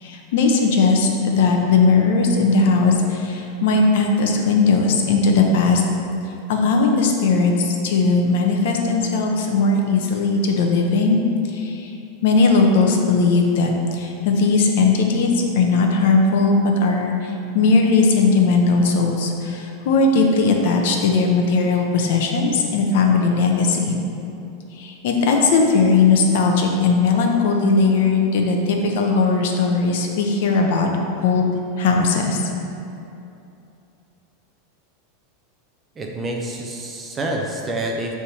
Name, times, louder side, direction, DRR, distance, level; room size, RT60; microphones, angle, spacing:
voice 1, 0.0-5.8 6.5-11.2 11.5-11.9 12.2-23.9 24.8-30.9 31.2-31.5 31.8-32.4, left 4 dB, 60° left, 2 dB, 0.9 m, -18 dB
voice 2, 36.0-38.1, right 1 dB, 15° right, 0 dB, 0.5 m, -27 dB
7.1 x 3.6 x 6.1 m, 2.7 s
supercardioid pair, 170°, 0 cm